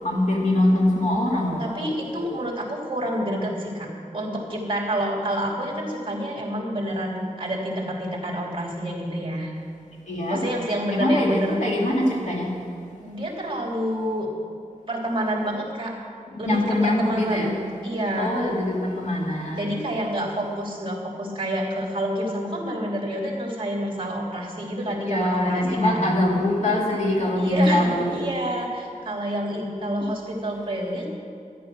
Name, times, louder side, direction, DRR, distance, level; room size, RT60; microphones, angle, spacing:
voice 1, 0.0-1.7 10.1-10.4 10.9-12.5 16.3-17.6 18.2-19.8 25.0-28.1, left 1 dB, 60° left, -2 dB, 2.5 m, -23 dB
voice 2, 1.6-9.5 10.3-11.6 13.0-14.3 14.9-16.0 16.4-17.6 17.8-18.3 19.6-26.1 27.4-31.1, right 1 dB, 40° right, -2 dB, 3.0 m, -28 dB
13.5 x 11.0 x 6.2 m, 2.5 s
wide cardioid pair, 105°, 14 cm